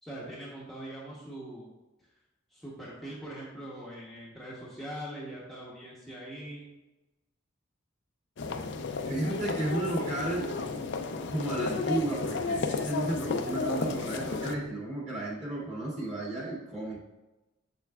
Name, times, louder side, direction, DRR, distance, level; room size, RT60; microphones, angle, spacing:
voice 1, 0.0-1.7 2.5-6.7, right 1 dB, ahead, -7 dB, 1.0 m, -42 dB
sound 1, 8.4-14.6, left 4 dB, 60° left, 0.5 m, -33 dB
voice 2, 9.1-10.5 11.3-17.0, right 2 dB, 35° right, -6 dB, 2.3 m, -33 dB
7.0 x 6.8 x 2.3 m, 1.0 s
head